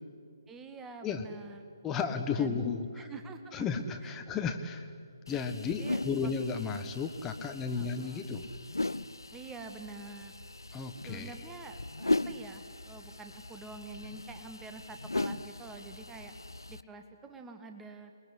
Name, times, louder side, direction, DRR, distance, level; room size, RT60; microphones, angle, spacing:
voice 1, 0.5-1.6 2.4-2.7 2.9-3.4 4.0-4.3 5.6-6.3 7.7-8.3 9.3-10.3 11.0-16.3 16.7-18.2, right 3 dB, 10° right, 6 dB, 1.7 m, -47 dB
voice 2, 1.8-3.1 3.5-4.9 5.3-8.4 10.7-11.3, left 5 dB, 10° left, 6 dB, 1.3 m, -33 dB
sound 1, 5.3-16.8, left 2 dB, 75° left, 0.7 m, -38 dB
28.5 x 21.0 x 9.9 m, 2.2 s
figure-of-eight pair, 140°, 2 cm